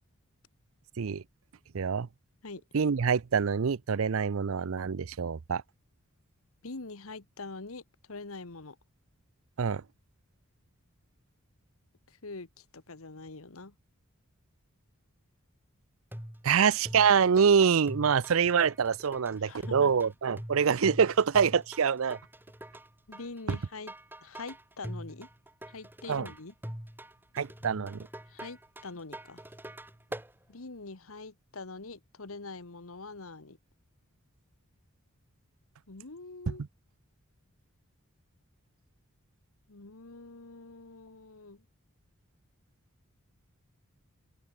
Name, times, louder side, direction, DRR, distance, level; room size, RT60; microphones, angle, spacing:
voice 1, 1.7-2.1 2.7-5.6 9.6-9.8 16.4-22.2 23.5-23.6 26.1-26.3 27.3-28.1 36.5-36.6, right 6 dB, 65° right, 0.5 m, -25 dB
voice 2, 6.6-8.8 12.1-13.7 19.4-20.1 23.1-23.9 24.2-25.3 25.7-26.5 28.3-29.4 30.5-33.6 35.9-36.6 39.7-41.6, left 3 dB, 75° left, 1.4 m, -44 dB
sound 1, 16.1-30.3, right 1 dB, 10° right, 2.5 m, -44 dB
open air
head